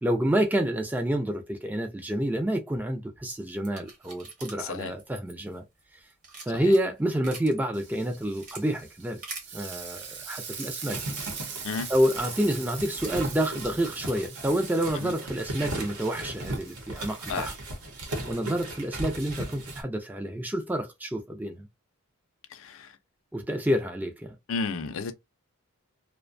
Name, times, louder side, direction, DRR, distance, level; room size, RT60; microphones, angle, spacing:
voice 1, 0.0-5.6 6.5-9.2 9.5-11.0 11.9-17.5 18.2-21.7 23.3-24.3, right 1 dB, 10° right, 0.4 m, -28 dB
sound 1, 3.3-5.8 6.1-7.6 8.0-8.6 9.2-9.5 10.2-14.4, right 3 dB, 35° right, 1.0 m, -45 dB
voice 2, 4.6-4.9 6.5-6.7 11.6-11.9 15.0-15.1 17.3-17.5 22.5-22.9 24.5-25.1, left 4 dB, 60° left, 0.4 m, -32 dB
Frying (food), 7.7-17.5, right 6 dB, 50° right, 0.6 m, -42 dB
sound 2, 10.9-19.8, right 1 dB, 75° right, 0.9 m, -37 dB
2.5 x 2.2 x 2.5 m
head